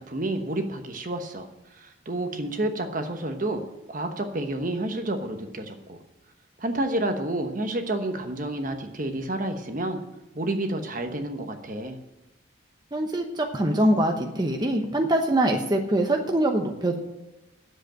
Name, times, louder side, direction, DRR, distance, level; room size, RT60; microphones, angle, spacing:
voice 1, 0.0-3.6 3.9-6.0 6.6-10.0 10.3-12.0, right 1 dB, 40° right, 6 dB, 1.1 m, -30 dB
voice 2, 12.9-17.0, right 1 dB, 20° right, 3 dB, 1.0 m, -23 dB
9.7 x 7.8 x 9.0 m, 0.97 s
head